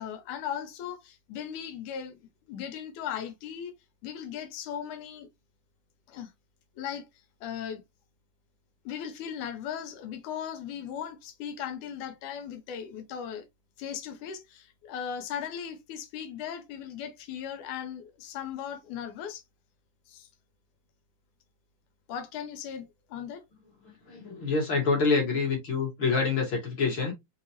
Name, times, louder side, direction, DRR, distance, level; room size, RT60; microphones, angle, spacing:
voice 1, 0.0-2.2 2.5-3.7 4.0-5.3 6.1-6.3 6.8-7.1 7.4-7.8 8.9-13.5 13.8-19.4 20.1-20.3 22.1-23.4, left 8 dB, 90° left, 2.3 m, -37 dB
voice 2, 24.1-27.1, left 4 dB, 45° left, 1.9 m, -26 dB
5.4 x 2.8 x 2.8 m
omnidirectional pair, 3.5 m